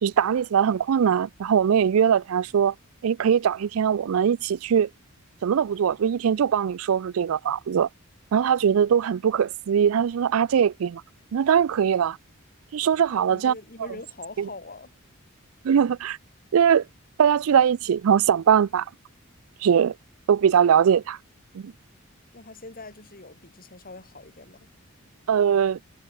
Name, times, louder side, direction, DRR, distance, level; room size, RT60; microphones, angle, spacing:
voice 1, 0.0-2.7 3.0-4.9 5.4-7.9 8.3-11.0 11.3-12.2 12.7-13.5 14.4-14.5 15.6-16.2 16.5-16.8 17.2-18.9 19.6-19.9 20.3-21.2 21.5-21.7 25.3-25.8, right 8 dB, 85° right, 0.4 m, -21 dB
voice 2, 13.2-14.9 22.3-24.7, left 2 dB, 45° left, 5.4 m, -43 dB
head